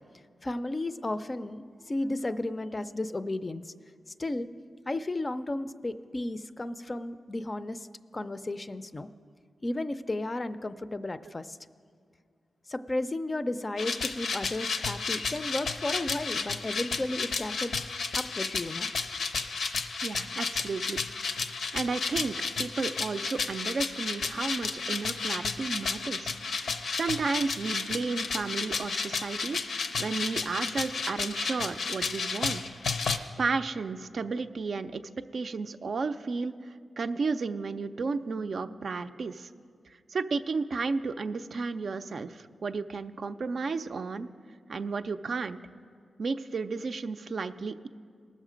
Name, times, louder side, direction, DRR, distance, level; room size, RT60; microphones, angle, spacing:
voice 1, 0.4-3.7 4.2-4.5 4.9-7.9 8.1-9.1 9.6-11.6 12.7-17.9 18.1-18.9, left 2 dB, 30° left, 11 dB, 0.4 m, -33 dB
sound 1, 13.8-33.2, left 4 dB, 80° left, 0.6 m, -32 dB
voice 2, 20.0-21.0 21.3-21.4 21.7-32.6 33.4-35.0 35.3-39.5 40.1-44.3 44.7-45.6 46.2-47.9, right 4 dB, 60° right, 9 dB, 0.4 m, -33 dB
19.0 x 6.5 x 5.0 m, 2.2 s
cardioid pair, 75°, 0 cm